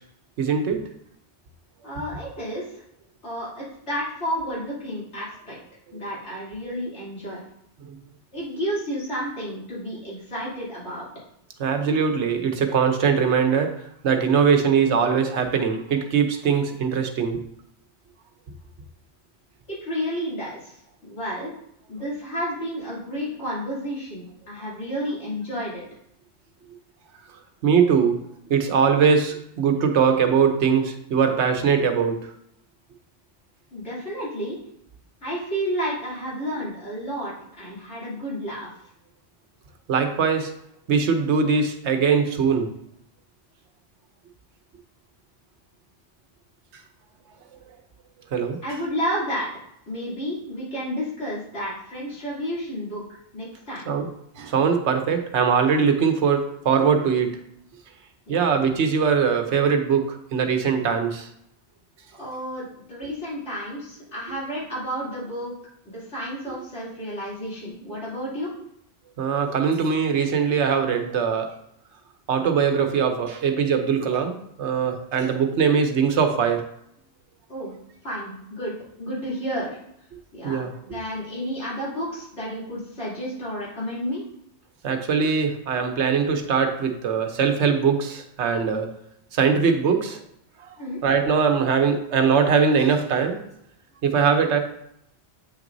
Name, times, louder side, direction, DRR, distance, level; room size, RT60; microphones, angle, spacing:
voice 1, 0.4-0.8 7.9-8.0 11.6-13.7 14.0-17.5 27.6-28.2 28.5-32.3 39.9-40.5 40.9-42.7 48.3-48.6 53.9-54.1 54.4-57.3 58.3-61.3 69.2-71.5 72.3-76.6 80.4-80.7 84.8-88.9 89.3-90.2 91.0-93.4 94.0-94.6, right 6 dB, 85° right, 6 dB, 1.1 m, -21 dB
voice 2, 1.8-2.8 3.2-5.6 5.9-7.4 8.3-11.1 19.7-21.5 21.9-25.8 33.7-34.6 35.2-38.7 48.6-49.5 49.9-53.0 53.3-53.9 58.3-58.5 62.2-65.5 65.8-68.5 77.5-77.7 78.0-79.8 80.3-84.2 90.8-91.0, equal, 85° left, -8 dB, 3.2 m, -31 dB
8.2 x 6.0 x 2.6 m, 0.74 s
omnidirectional pair, 1.1 m